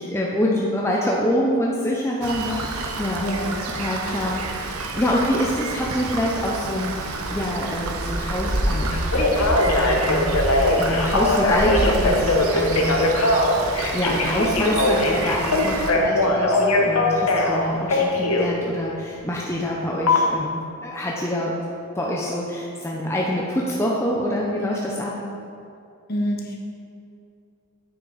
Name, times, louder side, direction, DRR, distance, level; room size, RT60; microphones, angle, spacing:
voice 1, 0.0-3.2 3.8-13.1 13.9-21.6 22.0-25.1, left 1 dB, 10° left, -3 dB, 0.5 m, -26 dB
Rain, 2.2-15.9, right 3 dB, 80° right, 0.7 m, -30 dB
voice 2, 3.1-3.5 16.0-16.1 26.1-26.6, equal, 45° left, 0 dB, 1.1 m, -27 dB
sound 1, 7.8-13.3, equal, 40° right, 1.5 m, -28 dB
Telephone, 8.9-18.5 20.1-20.2, left 2 dB, 85° left, 1.0 m, -20 dB
8.7 x 6.2 x 4.0 m, 2.5 s
head